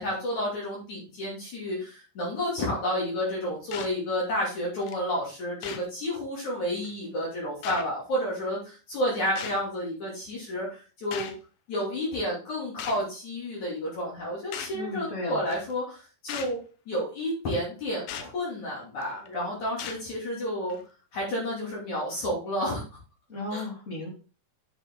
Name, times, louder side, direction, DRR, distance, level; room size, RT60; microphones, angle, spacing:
voice 1, 0.0-11.3 11.7-16.6 16.9-20.8 21.1-22.8 23.5-23.6, equal, 45° left, -4 dB, 3.8 m, -31 dB
sound 1, 3.7-4.0 4.9-5.0 5.6-5.9 6.8-6.9 7.6-7.8 9.4-9.6 11.1-11.4 12.8-13.0 14.5-14.8 15.5-15.7 16.3-16.6 18.1-18.3 19.0-19.3 19.8-20.0 20.7-20.8, left 9 dB, 75° left, 2.2 m, -37 dB
voice 2, 14.7-15.4 23.3-24.1, left 2 dB, 25° left, -1 dB, 1.8 m, -35 dB
9.9 x 6.0 x 3.9 m, 0.35 s
omnidirectional pair, 5.0 m